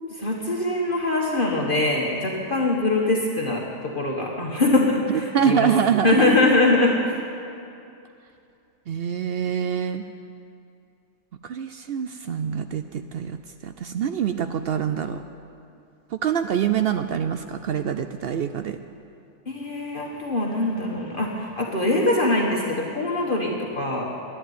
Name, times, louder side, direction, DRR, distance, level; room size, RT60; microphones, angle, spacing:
voice 1, 0.1-5.7 6.0-7.0 19.5-24.1, left 2 dB, 40° left, -1 dB, 1.4 m, -23 dB
voice 2, 5.1-6.3 8.9-10.0 11.4-15.2 16.1-18.8, right 8 dB, 65° right, 8 dB, 0.6 m, -25 dB
11.0 x 10.5 x 9.3 m, 2.6 s
omnidirectional pair, 1.4 m